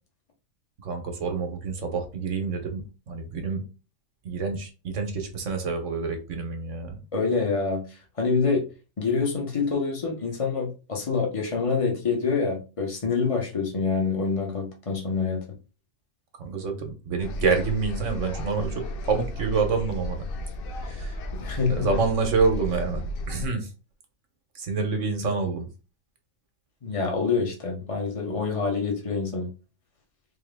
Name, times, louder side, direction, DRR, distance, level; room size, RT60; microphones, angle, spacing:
voice 1, 0.8-3.6 4.2-7.0 16.4-20.2 20.8-21.2 21.7-23.7 24.5-25.7, right 4 dB, 65° right, 5 dB, 1.2 m, -27 dB
voice 2, 7.1-8.6 9.0-15.4 21.3-21.9 26.8-29.5, left 4 dB, 25° left, 1 dB, 1.0 m, -26 dB
sound 1, 17.2-23.5, equal, 65° left, 0.5 m, -34 dB
3.8 x 3.0 x 3.5 m, 0.33 s
omnidirectional pair, 1.5 m